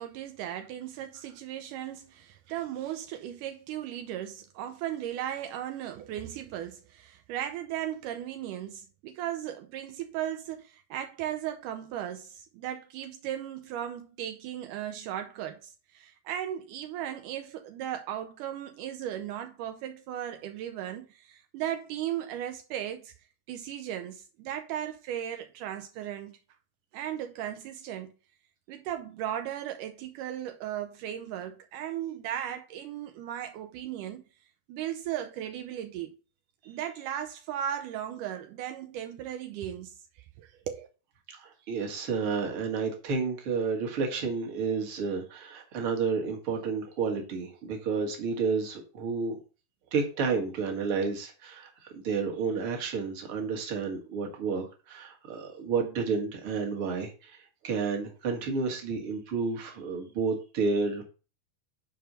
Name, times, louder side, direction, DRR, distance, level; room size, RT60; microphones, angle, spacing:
voice 1, 0.0-23.1 23.5-26.4 26.9-28.1 28.7-34.2 34.7-36.1 36.7-40.9, right 11 dB, 80° right, 2.1 m, -36 dB
voice 2, 41.3-49.4 49.9-61.0, right 5 dB, 45° right, 2.2 m, -31 dB
6.2 x 4.8 x 6.6 m
omnidirectional pair, 3.8 m